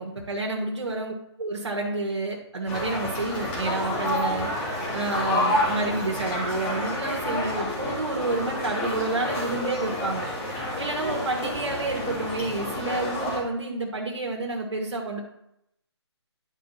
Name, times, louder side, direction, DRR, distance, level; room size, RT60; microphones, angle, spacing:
voice 1, 0.0-4.7 4.9-10.2 10.8-15.2, right 2 dB, 85° right, -1 dB, 1.5 m, -29 dB
sound 1, 2.7-13.4, left 1 dB, 15° left, 2.2 m, -29 dB
10.0 x 5.0 x 4.1 m, 0.81 s
figure-of-eight pair, 155°, 15 cm